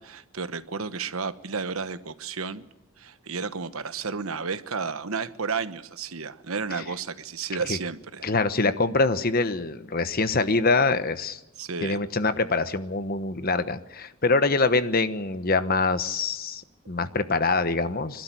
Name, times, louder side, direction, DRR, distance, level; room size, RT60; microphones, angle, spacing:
voice 1, 0.0-2.7 3.0-8.3 11.6-12.0, right 5 dB, 75° right, 12 dB, 1.1 m, -32 dB
voice 2, 8.2-11.4 11.8-18.2, left 3 dB, 40° left, 11 dB, 1.2 m, -24 dB
25.5 x 12.5 x 9.2 m, 0.98 s
head